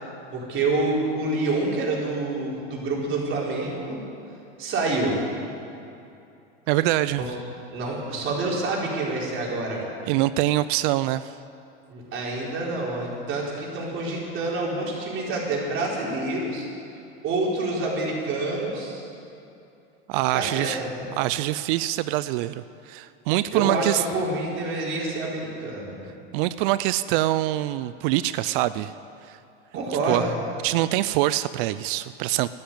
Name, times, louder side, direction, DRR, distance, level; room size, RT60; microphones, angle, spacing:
voice 1, 0.3-4.0 4.6-5.1 7.1-7.3 7.7-9.8 11.9-16.7 17.2-19.1 20.3-20.9 23.5-26.0 29.7-30.3, right 2 dB, 45° right, -3 dB, 4.4 m, -27 dB
voice 2, 6.7-7.2 10.1-11.4 20.1-20.8 21.2-24.0 26.3-28.9 29.2-29.4 30.1-30.2 30.6-32.5, right 15 dB, 60° right, 15 dB, 0.5 m, -24 dB
12.0 x 10.5 x 9.3 m, 2.7 s
hypercardioid pair, 105°, 30 cm